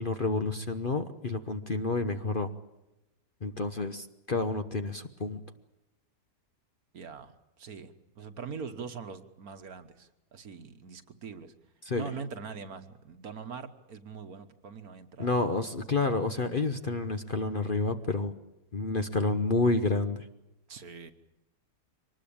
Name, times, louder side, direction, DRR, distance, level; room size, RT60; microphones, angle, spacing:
voice 1, 0.0-2.5 3.4-5.4 11.8-12.1 15.2-18.3 18.7-20.3, left 3 dB, 40° left, 8 dB, 1.0 m, -29 dB
voice 2, 6.9-11.5 11.9-15.3 15.8-16.2 20.7-21.1, right 6 dB, 60° right, 9 dB, 1.7 m, -43 dB
24.5 x 19.5 x 8.7 m, 0.95 s
omnidirectional pair, 1.8 m